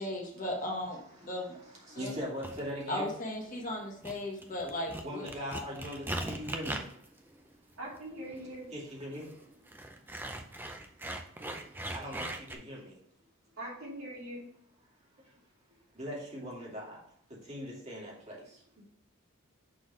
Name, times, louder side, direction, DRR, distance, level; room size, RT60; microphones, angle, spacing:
voice 1, 0.0-1.6 1.9-2.1 2.9-5.3, left 1 dB, 35° left, 0 dB, 1.4 m, -36 dB
voice 2, 1.9-3.1 5.0-6.9 8.7-9.3 11.9-12.3 12.5-12.9 16.0-17.0 17.5-18.3, equal, 30° right, -4 dB, 2.4 m, -40 dB
sound 1, 2.4-2.7 3.4-3.7 4.0-12.6, right 1 dB, 10° right, 0.5 m, -40 dB
voice 3, 7.8-8.6 13.6-14.4 18.8-18.9, right 1 dB, 75° right, -4 dB, 2.8 m, -42 dB
6.4 x 4.0 x 4.8 m, 0.66 s
head